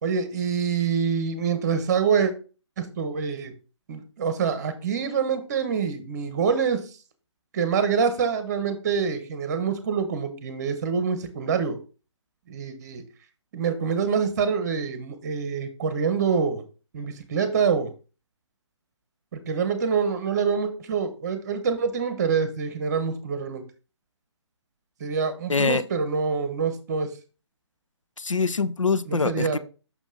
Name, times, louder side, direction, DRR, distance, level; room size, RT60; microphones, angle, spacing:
voice 1, 0.0-2.3 2.8-3.5 3.9-6.9 7.5-11.8 12.5-13.0 13.5-16.6 16.9-17.9 19.3-23.6 25.0-27.1 29.1-29.6, right 6 dB, 35° right, 1.1 m, -26 dB
voice 2, 25.5-25.9 28.2-29.6, left 4 dB, 85° left, 0.5 m, -24 dB
6.3 x 5.3 x 3.7 m
figure-of-eight pair, 140°, 16 cm